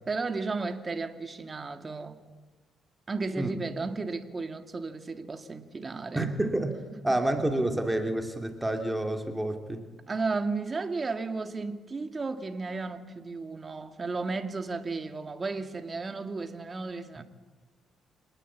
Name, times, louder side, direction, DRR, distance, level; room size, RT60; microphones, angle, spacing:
voice 1, 0.1-2.2 3.1-6.3 6.9-7.2 10.1-17.2, right 3 dB, 30° right, 2.2 m, -34 dB
voice 2, 6.1-6.7 7.0-9.9, right 1 dB, 10° right, 2.9 m, -28 dB
26.5 x 19.5 x 8.6 m
cardioid pair, 90°, 0 cm